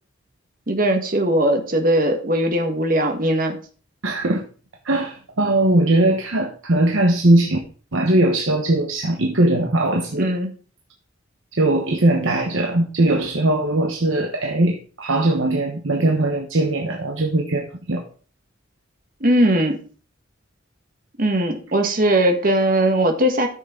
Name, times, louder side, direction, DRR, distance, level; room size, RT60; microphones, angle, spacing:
voice 1, 0.7-3.6 10.2-10.5 19.2-19.8 21.2-23.5, right 1 dB, 45° right, 1.5 m, -19 dB
voice 2, 4.0-4.4 4.8-7.6 7.9-10.3 11.5-18.0, right 1 dB, 75° right, 1.1 m, -20 dB
13.0 x 6.4 x 3.7 m
head